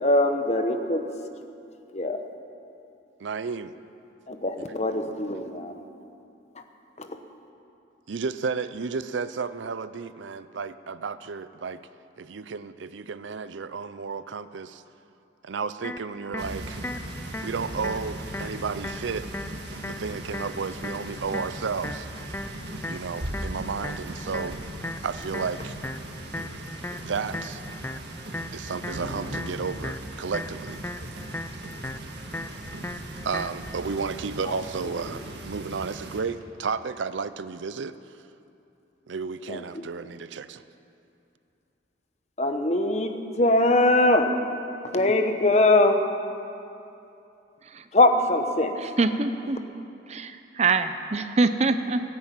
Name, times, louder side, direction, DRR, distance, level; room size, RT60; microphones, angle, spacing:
voice 1, 0.0-1.0 1.9-2.2 4.3-5.9 7.0-7.2 34.5-34.6 39.5-39.9 42.4-44.3 44.8-46.0 47.9-48.8, left 2 dB, 35° left, 6 dB, 1.0 m, -22 dB
voice 2, 3.2-3.7 8.1-11.8 12.2-14.8 15.4-16.8 17.4-19.3 19.9-22.3 22.9-24.6 25.0-25.8 27.0-27.6 28.5-30.8 33.2-38.2 39.1-40.6, right 5 dB, 80° right, 14 dB, 0.5 m, -32 dB
sound 1, 15.8-33.8, left 2 dB, 10° left, 0.4 m, -38 dB
sound 2, 16.4-36.2, right 1 dB, 65° right, 1.7 m, -38 dB
voice 3, 48.8-49.6 50.1-52.0, right 3 dB, 35° right, 10 dB, 0.6 m, -25 dB
15.5 x 9.6 x 9.0 m, 2.7 s
head